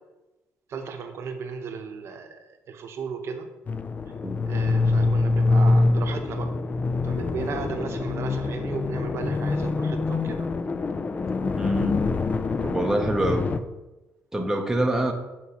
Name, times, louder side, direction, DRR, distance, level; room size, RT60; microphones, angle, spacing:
voice 1, 0.7-3.5 4.5-6.5 7.0-10.5, right 5 dB, 60° right, 5 dB, 0.8 m, -35 dB
sound 1, 3.7-13.6, left 3 dB, 30° left, 0.3 m, -25 dB
voice 2, 11.6-12.0 12.6-13.5 14.3-15.1, right 1 dB, 10° right, 2 dB, 0.7 m, -25 dB
8.3 x 4.4 x 2.9 m, 1.1 s
cardioid pair, 90°, 5 cm